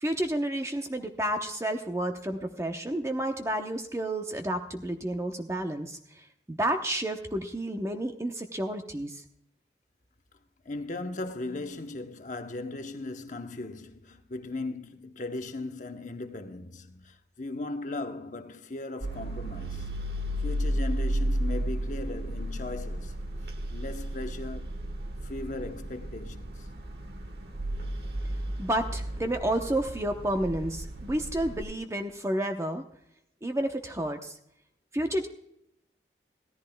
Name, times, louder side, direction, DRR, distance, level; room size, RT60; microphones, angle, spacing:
voice 1, 0.0-9.2 28.6-32.8 33.4-34.3 34.9-35.3, right 1 dB, 15° right, 0.8 m, -30 dB
voice 2, 10.6-19.9 20.4-23.1 23.7-24.8 25.2-26.7, left 2 dB, 45° left, 0.9 m, -38 dB
sound 1, 19.0-31.6, right 1 dB, 60° right, 1.4 m, -33 dB
17.0 x 14.0 x 2.3 m
head